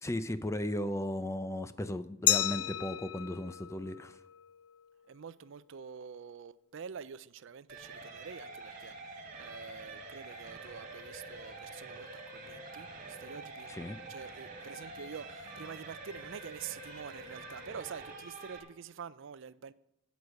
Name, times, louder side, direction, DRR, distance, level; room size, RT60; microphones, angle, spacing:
voice 1, 0.0-4.2 13.7-14.0, left 1 dB, 15° left, 0.5 m, -36 dB
Glass, 2.3-5.0, left 15 dB, 90° left, 0.4 m, -33 dB
voice 2, 5.1-19.7, right 7 dB, 60° right, 0.4 m, -47 dB
sound 1, 7.7-18.6, right 2 dB, 40° right, 2.4 m, -46 dB
11.5 x 8.1 x 6.3 m
head